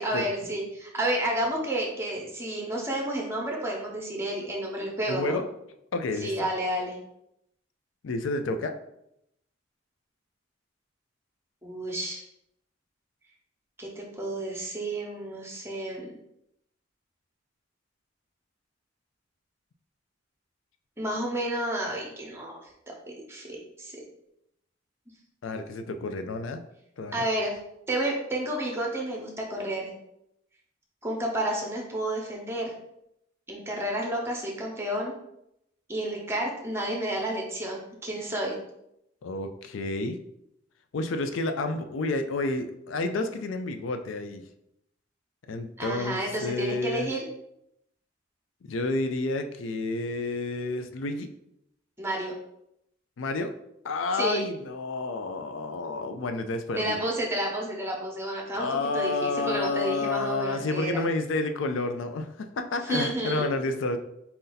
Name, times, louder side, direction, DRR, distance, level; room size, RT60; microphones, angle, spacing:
voice 1, 0.0-5.4 6.2-6.9 11.6-12.2 13.8-16.1 21.0-22.6 22.9-24.0 27.1-27.6 27.9-29.9 31.0-32.7 33.5-35.1 35.9-38.6 45.8-47.3 52.0-52.3 54.1-54.4 56.8-58.7 58.9-61.0 62.8-63.4, right 1 dB, 15° right, -1 dB, 0.9 m, -31 dB
voice 2, 5.1-5.5 5.9-6.5 8.0-8.7 25.4-26.6 27.0-27.2 39.2-40.2 40.9-44.4 45.5-47.1 48.6-51.3 53.2-53.5 53.8-57.0 58.5-64.0, left 3 dB, 85° left, 8 dB, 0.4 m, -30 dB
4.3 x 2.7 x 3.9 m, 0.79 s
head